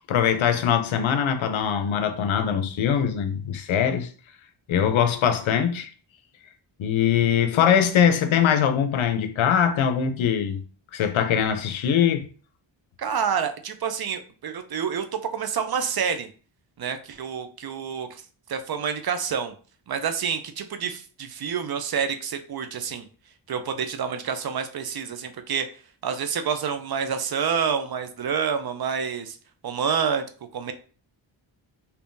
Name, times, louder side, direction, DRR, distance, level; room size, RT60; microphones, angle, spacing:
voice 1, 0.1-4.1 4.7-5.9 6.8-10.6 10.9-12.3, left 8 dB, 80° left, 0.6 m, -22 dB
voice 2, 13.0-16.3 16.8-18.2 18.5-19.5 19.9-23.1 23.5-25.7 26.0-29.4 29.6-30.2 30.5-30.7, right 7 dB, 50° right, 0.5 m, -28 dB
3.5 x 2.8 x 2.6 m
cardioid pair, 75°, 47 cm